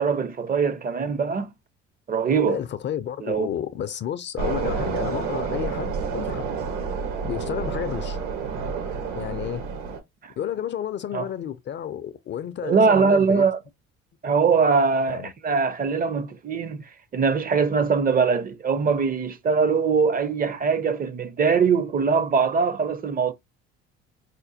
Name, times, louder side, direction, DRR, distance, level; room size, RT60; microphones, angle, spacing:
voice 1, 0.0-1.5 2.1-2.6 3.2-3.5 10.2-10.3 11.1-11.2 12.6-13.6 14.2-23.3, right 5 dB, 30° right, 0.5 m, -22 dB
voice 2, 2.5-6.5 7.2-8.2 9.1-9.6 10.4-13.4 15.1-15.3, left 9 dB, 40° left, 0.4 m, -31 dB
sound 1, 4.4-10.0, right 5 dB, 75° right, 1.1 m, -29 dB
5.0 x 2.1 x 2.6 m
supercardioid pair, 70°, 30 cm